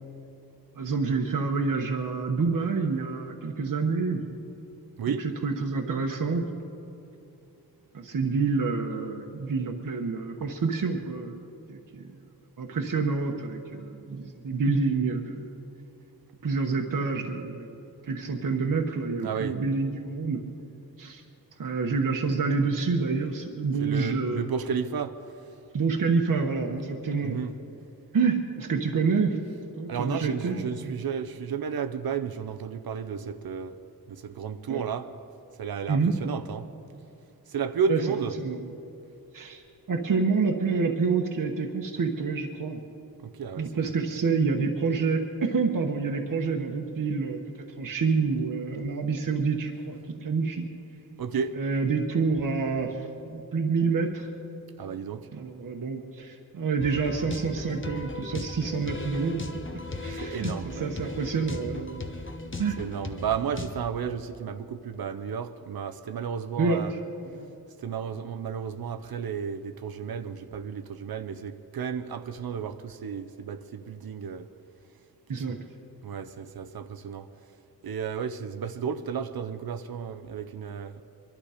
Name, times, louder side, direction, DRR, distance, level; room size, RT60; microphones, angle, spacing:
voice 1, 0.7-4.2 5.1-6.5 7.9-11.4 11.7-12.1 12.6-15.5 16.4-20.4 21.0-21.2 21.6-24.4 25.7-27.4 28.1-29.4 29.8-30.9 34.7-34.8 35.9-36.1 37.9-38.0 38.4-38.6 39.3-39.6 39.9-42.8 43.6-47.4 47.8-50.7 51.5-54.3 55.3-59.4 60.0-62.0 62.6-62.8 66.6-67.0 67.2-67.5 75.3-75.6, right 4 dB, 60° right, 1.1 m, -28 dB
voice 2, 19.2-19.6 23.8-25.2 27.2-27.6 29.9-33.8 34.1-35.2 35.6-36.7 37.5-38.3 43.2-43.7 51.2-51.6 54.8-55.3 60.1-60.9 62.8-66.9 67.8-74.5 75.3-75.6 76.0-77.3 77.8-81.0, right 6 dB, 80° right, 0.7 m, -33 dB
sound 1, 56.8-63.8, left 2 dB, 35° left, 1.1 m, -37 dB
23.5 x 12.0 x 5.0 m
wide cardioid pair, 105°, 36 cm